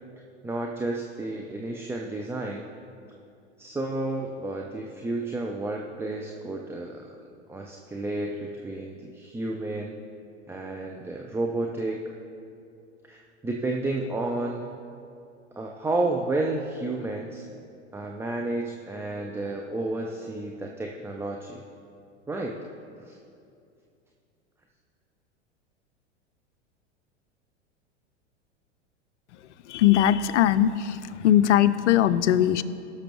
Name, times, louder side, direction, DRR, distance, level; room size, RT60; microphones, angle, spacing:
voice 1, 0.4-2.7 3.6-7.1 7.5-9.9 10.5-12.0 13.0-14.7 15.6-17.4 17.9-21.6 22.3-22.6 23.0-23.2, right 2 dB, 5° right, 1 dB, 0.4 m, -31 dB
voice 2, 29.7-32.6, left 11 dB, 70° left, 13 dB, 0.6 m, -20 dB
18.0 x 6.4 x 3.0 m, 2.5 s
hypercardioid pair, 95°, 37 cm